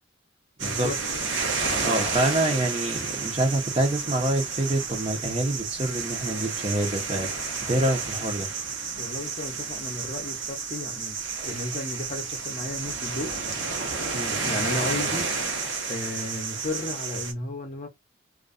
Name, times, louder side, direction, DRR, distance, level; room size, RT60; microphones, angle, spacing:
voice 1, 0.6-1.0 9.0-11.1 11.4-13.4 14.4-17.9, left 2 dB, 40° left, 0.6 m, -34 dB
sound 1, 0.6-17.3, right 4 dB, 65° right, 0.8 m, -31 dB
voice 2, 1.8-8.5 14.1-14.4, right 1 dB, 30° right, 0.6 m, -26 dB
2.4 x 2.2 x 2.4 m
head